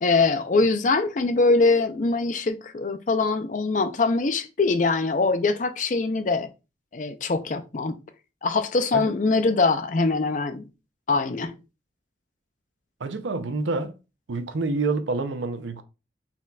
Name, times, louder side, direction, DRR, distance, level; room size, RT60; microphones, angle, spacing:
voice 1, 0.0-6.5 6.9-7.9 8.4-10.6 11.1-11.5, left 3 dB, 40° left, 0.5 m, -23 dB
voice 2, 13.0-14.0 14.3-15.8, right 3 dB, 80° right, 0.6 m, -27 dB
4.2 x 3.9 x 2.3 m
head